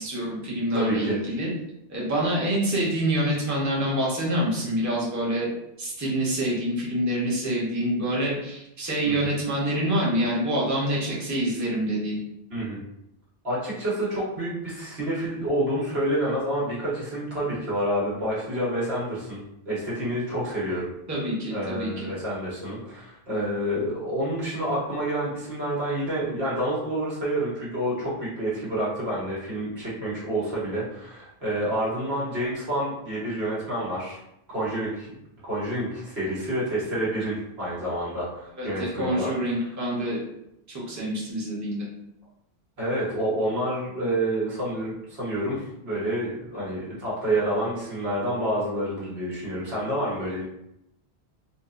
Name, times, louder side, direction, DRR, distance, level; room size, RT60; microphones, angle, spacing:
voice 1, 0.0-1.5 1.9-5.5 5.8-12.2 21.1-22.1 38.6-40.2 40.7-41.8, right 1 dB, 20° right, -6 dB, 0.8 m, -26 dB
voice 2, 0.7-1.2 9.0-9.2 12.5-12.8 13.4-20.9 21.5-34.2 34.5-35.1 35.4-39.3 42.8-50.4, right 1 dB, 80° right, -7 dB, 1.5 m, -28 dB
4.3 x 2.1 x 2.5 m, 0.81 s
omnidirectional pair, 1.1 m